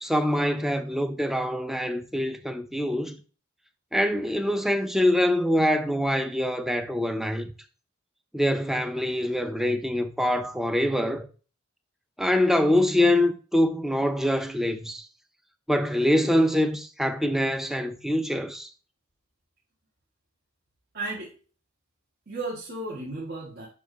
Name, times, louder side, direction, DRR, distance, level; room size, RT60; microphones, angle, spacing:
voice 1, 0.0-3.2 3.9-7.5 8.3-11.3 12.2-15.0 15.7-18.7, left 1 dB, ahead, 0.5 m, -24 dB
voice 2, 20.9-21.3 22.3-23.7, right 2 dB, 50° right, 1.8 m, -34 dB
8.5 x 2.9 x 5.3 m
head